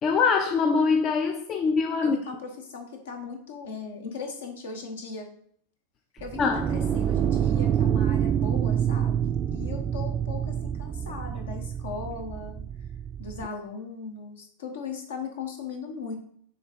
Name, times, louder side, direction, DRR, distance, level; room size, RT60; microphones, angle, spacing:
voice 1, 0.0-2.2 6.4-6.6, left 5 dB, 30° left, 4 dB, 0.5 m, -23 dB
voice 2, 2.0-5.3 6.2-6.4 6.7-12.6 13.2-16.2, left 5 dB, 60° left, 3 dB, 1.2 m, -38 dB
sound 1, 6.2-13.5, right 9 dB, 25° right, 0.3 m, -27 dB
6.4 x 3.7 x 4.4 m, 0.65 s
figure-of-eight pair, 90°, 0 cm